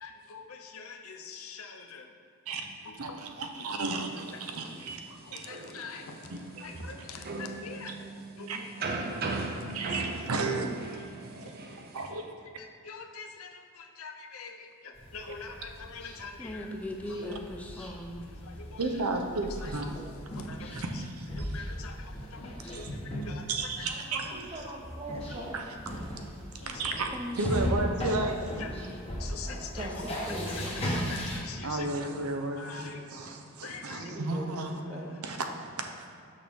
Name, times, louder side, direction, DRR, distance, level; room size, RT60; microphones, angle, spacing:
voice 1, 0.0-2.1 2.9-3.2 5.1-6.2 6.6-7.9 8.4-9.5 12.8-16.7 17.1-17.2 17.6-17.7 18.1-18.8 19.6-19.7 20.3-20.8 21.4-22.9 23.2-23.5 24.6-24.8 26.6-26.7 28.6-28.7 29.2-29.9 30.5-30.7 30.9-32.1 32.4-33.0 33.6-34.0 34.5-34.6, left 5 dB, 70° left, 5 dB, 0.6 m, -44 dB
voice 2, 3.0-5.0 5.3-5.5 6.3-6.9 7.9-8.0 8.5-8.6 9.7-11.6 11.9-12.3 18.8-19.9 20.5-21.6 22.7-23.0 23.5-24.6 25.5-25.7 26.7-27.1 27.4-28.5 31.6-34.8 35.2-36.1, right 3 dB, 80° right, 4 dB, 0.7 m, -34 dB
sound 1, 3.8-12.1, right 3 dB, 45° right, 0.6 m, -39 dB
sound 2, 14.9-31.4, equal, 30° left, 1.2 m, -37 dB
voice 3, 16.4-18.3 26.9-28.1 28.5-29.0 29.8-30.9, left 1 dB, 5° left, 2 dB, 0.4 m, -40 dB
voice 4, 23.9-25.6 27.5-27.6 29.4-30.8 33.9-35.2, right 1 dB, 30° right, 0 dB, 0.9 m, -41 dB
6.4 x 6.1 x 3.6 m, 2.4 s
head